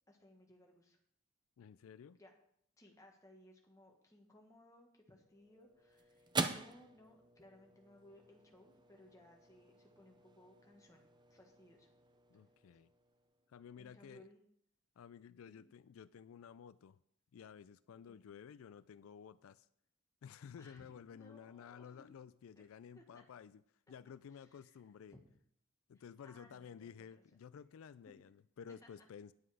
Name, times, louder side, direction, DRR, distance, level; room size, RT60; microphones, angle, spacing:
voice 1, 0.1-1.0 2.1-2.3 2.8-11.0 11.3-11.9 13.8-14.4 15.5-15.6 18.1-18.2 20.6-22.1 22.5-22.6 22.9-23.2 24.3-24.7 25.1-25.2 25.9-27.2 27.5-27.6 28.8-28.9, left 1 dB, 15° left, 1 dB, 1.5 m, -62 dB
voice 2, 1.6-2.2 12.3-12.9 13.5-14.2 15.0-17.0 17.3-19.7 20.2-23.6 23.9-25.2 25.9-29.3, left 7 dB, 85° left, 16 dB, 0.3 m, -53 dB
sound 1, 5.1-13.6, right 4 dB, 20° right, 0.5 m, -46 dB
9.7 x 7.7 x 4.9 m, 0.69 s
head